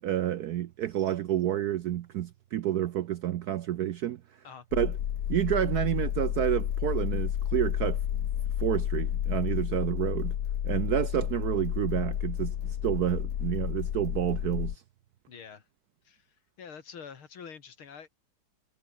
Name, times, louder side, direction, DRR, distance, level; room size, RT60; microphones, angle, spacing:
voice 1, 0.0-4.2 4.7-4.9 5.3-8.0 8.6-10.3 10.6-14.8, right 12 dB, 70° right, 0.9 m, -29 dB
sound 1, 4.7-14.7, left 10 dB, 65° left, 1.6 m, -31 dB
voice 2, 15.3-15.7 16.0-18.1, left 6 dB, 80° left, 3.1 m, -46 dB
omnidirectional pair, 2.3 m